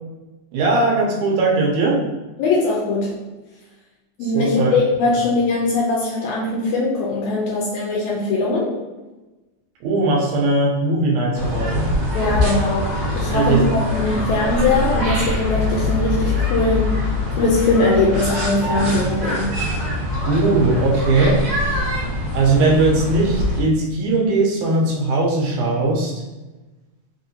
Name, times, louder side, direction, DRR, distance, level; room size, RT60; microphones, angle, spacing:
voice 1, 0.5-2.0 4.3-4.7 9.8-11.9 13.3-13.8 14.1-14.2 20.2-21.4 22.3-26.1, right 2 dB, 80° right, -2 dB, 2.1 m, -19 dB
voice 2, 2.4-3.2 4.2-8.7 12.1-17.0 17.3-19.6, left 2 dB, 80° left, -3 dB, 1.9 m, -21 dB
sound 1, 11.4-23.6, left 1 dB, 60° right, 1.4 m, -23 dB
4.9 x 2.6 x 2.7 m, 1.1 s
omnidirectional pair, 3.4 m